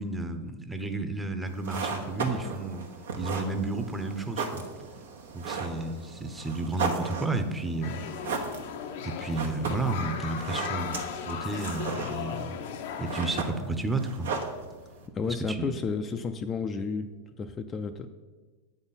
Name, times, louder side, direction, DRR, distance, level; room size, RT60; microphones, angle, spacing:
voice 1, 0.0-2.9 3.2-4.6 5.3-8.0 9.0-12.5 13.0-14.3 15.3-15.7, right 3 dB, 10° right, 7 dB, 0.7 m, -32 dB
sound 1, 1.5-15.1, right 4 dB, 85° right, 1.1 m, -36 dB
sound 2, 7.8-13.4, left 7 dB, 65° left, 0.6 m, -37 dB
voice 2, 15.1-17.1 17.4-18.1, left 5 dB, 30° left, 7 dB, 0.4 m, -31 dB
7.9 x 4.0 x 5.7 m, 1.3 s
hypercardioid pair, 115°, 0 cm